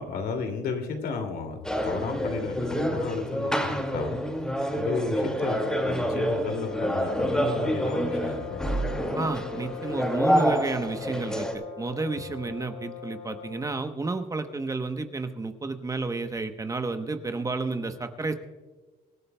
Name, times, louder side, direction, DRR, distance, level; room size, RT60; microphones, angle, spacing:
voice 1, 0.0-1.6 1.8-4.2 4.8-8.6, left 4 dB, 65° left, 5 dB, 2.5 m, -33 dB
sound 1, 1.6-11.5, equal, 5° left, 2.1 m, -28 dB
sound 2, 4.9-13.9, left 10 dB, 20° left, 1.6 m, -41 dB
voice 2, 9.2-18.3, right 3 dB, 20° right, 7 dB, 1.0 m, -31 dB
26.0 x 13.0 x 2.3 m, 1.3 s
cardioid pair, 110°, 17 cm